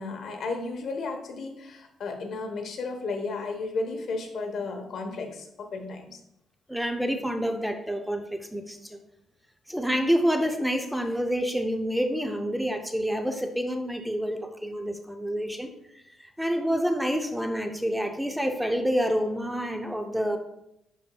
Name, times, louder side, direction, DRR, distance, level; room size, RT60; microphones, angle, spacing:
voice 1, 0.0-6.2, left 3 dB, 60° left, 5 dB, 1.1 m, -33 dB
voice 2, 6.7-9.0 9.7-15.7 16.2-20.4, equal, 5° right, 5 dB, 0.6 m, -28 dB
10.5 x 4.1 x 2.3 m, 0.82 s
cardioid pair, 90°, 0 cm